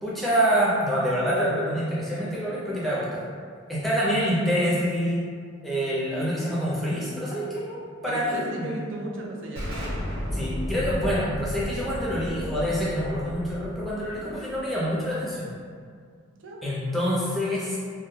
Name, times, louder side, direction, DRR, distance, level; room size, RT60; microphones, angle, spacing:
voice 1, 0.0-3.2 3.7-5.2 5.6-8.7 10.3-15.5 16.6-17.8, equal, ahead, -8 dB, 0.5 m, -26 dB
voice 2, 8.1-10.0 16.4-16.6, right 1 dB, 65° right, -2 dB, 0.4 m, -35 dB
Explosion, 9.6-15.0, equal, 85° right, 1.2 m, -33 dB
2.2 x 2.1 x 3.1 m, 2.1 s
head